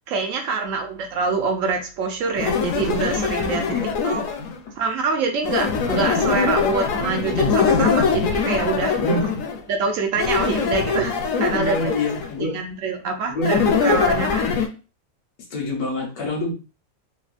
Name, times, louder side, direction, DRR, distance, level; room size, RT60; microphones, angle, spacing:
voice 1, 0.1-3.8 4.0-4.2 4.8-9.0 9.7-11.8 12.4-14.5, right 4 dB, 70° right, 4 dB, 0.9 m, -25 dB
sound 1, 2.4-4.6 5.4-9.6 10.2-12.3 13.4-14.7, left 5 dB, 70° left, 0.9 m, -22 dB
voice 2, 9.0-9.3 11.5-12.6 13.3-13.5 15.5-16.5, left 1 dB, 85° left, 1 dB, 1.4 m, -26 dB
3.3 x 2.1 x 2.4 m, 0.32 s
omnidirectional pair, 1.5 m